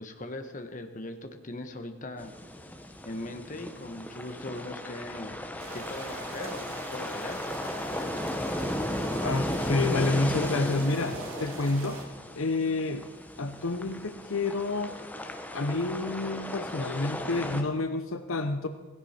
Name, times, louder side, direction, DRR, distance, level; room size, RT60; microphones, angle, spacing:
voice 1, 0.0-2.3 3.0-5.4 5.7-7.4, left 2 dB, 35° left, 6 dB, 1.3 m, -40 dB
sound 1, 2.2-17.6, left 1 dB, 10° left, 0.9 m, -35 dB
sound 2, 5.6-12.0, right 3 dB, 75° right, 2.5 m, -43 dB
voice 2, 9.2-12.0 12.4-13.1 13.4-14.9 15.5-18.7, left 3 dB, 70° left, 8 dB, 0.8 m, -29 dB
17.0 x 16.0 x 4.4 m, 1.4 s
head